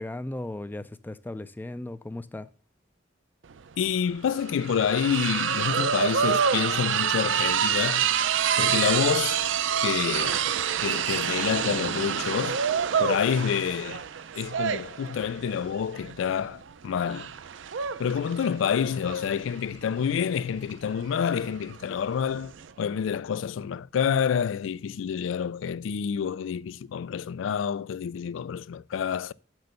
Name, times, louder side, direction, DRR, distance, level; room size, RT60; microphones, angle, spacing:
voice 1, 0.0-2.5, left 1 dB, 10° left, 0.3 m, -36 dB
sound 1, 3.5-3.6 3.8-22.7, right 8 dB, 75° right, 0.5 m, -28 dB
voice 2, 3.8-8.1 8.6-9.4 9.8-10.4 10.8-12.6 13.0-14.0 14.4-17.3 18.0-29.3, left 7 dB, 90° left, 0.3 m, -28 dB
6.5 x 6.1 x 6.7 m
head